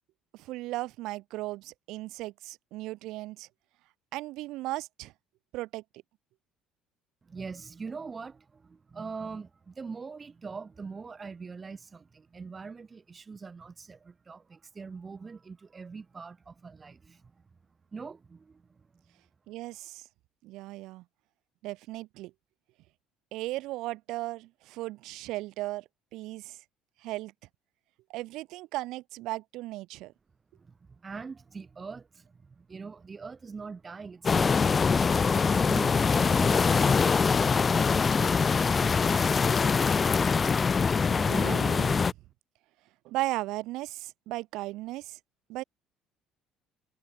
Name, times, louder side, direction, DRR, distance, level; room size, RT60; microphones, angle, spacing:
voice 1, 0.3-3.5 4.1-5.1 5.5-5.8 19.5-20.0 20.4-21.0 21.6-22.3 23.3-25.8 26.1-26.6 27.0-27.3 28.1-30.1 41.1-42.0 43.0-45.2 45.5-45.6, right 18 dB, 75° right, 3.9 m, -36 dB
voice 2, 7.2-17.3 17.9-18.9 30.6-38.4, right 5 dB, 20° right, 5.0 m, -43 dB
sound 1, 34.2-42.1, left 5 dB, 25° left, 1.1 m, -24 dB
cardioid pair, 135°, 0 cm